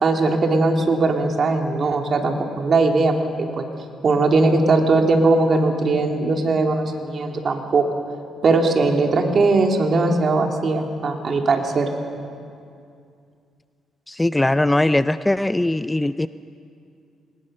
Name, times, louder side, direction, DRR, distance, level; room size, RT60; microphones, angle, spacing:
voice 1, 0.0-3.1 3.6-3.7 4.0-7.8 8.4-11.9, right 3 dB, 45° right, 3 dB, 2.6 m, -19 dB
voice 2, 14.1-16.3, left 1 dB, 10° left, 13 dB, 0.4 m, -20 dB
21.5 x 20.0 x 6.6 m, 2.4 s
cardioid pair, 90°, 0 cm